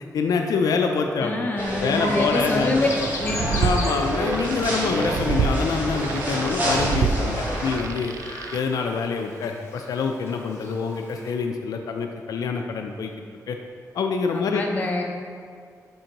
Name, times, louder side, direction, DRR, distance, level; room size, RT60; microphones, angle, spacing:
voice 1, 0.1-1.5 1.8-2.9 3.6-8.1 8.5-13.1 13.5-13.6 13.9-14.6, left 5 dB, 75° left, 4 dB, 0.3 m, -25 dB
voice 2, 1.2-2.9 3.2-3.4 14.3-15.0, left 2 dB, 25° left, 0 dB, 0.6 m, -26 dB
sound 1, 1.6-7.8, right 1 dB, 30° right, 1.2 m, -28 dB
Chirp tweet, 2.8-11.3, left 2 dB, 45° left, 1.0 m, -40 dB
sound 2, 3.1-8.6, right 5 dB, 60° right, 0.3 m, -28 dB
7.7 x 4.4 x 3.0 m, 2.2 s
wide cardioid pair, 175°, 6 cm